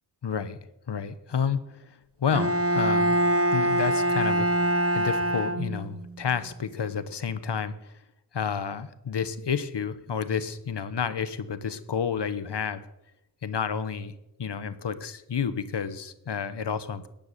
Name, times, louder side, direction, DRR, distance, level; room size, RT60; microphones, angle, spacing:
voice 1, 0.2-0.6 0.9-3.2 3.5-4.5 4.9-7.9 8.3-12.8 13.4-14.1 14.4-17.1, left 7 dB, 80° left, 13 dB, 1.2 m, -30 dB
Bowed string instrument, 2.3-6.1, right 1 dB, 35° right, 1.2 m, -24 dB
17.5 x 10.5 x 6.8 m, 0.90 s
wide cardioid pair, 105°, 41 cm